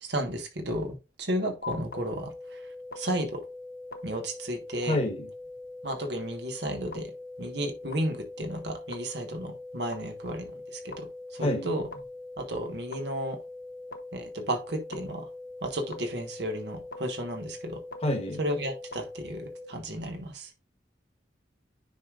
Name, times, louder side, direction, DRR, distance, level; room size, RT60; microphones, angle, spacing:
voice 1, 0.0-2.3 3.0-3.4 4.0-5.0 5.8-7.1 7.4-11.1 11.3-11.9 12.4-13.4 14.1-15.2 15.6-17.8 18.4-20.5, right 1 dB, 70° right, 1.3 m, -33 dB
sound 1, 1.6-19.7, left 2 dB, 50° left, 0.8 m, -42 dB
voice 2, 4.8-5.3 11.4-11.7 18.0-18.4, left 1 dB, 35° left, 1.3 m, -27 dB
9.5 x 4.9 x 2.5 m
head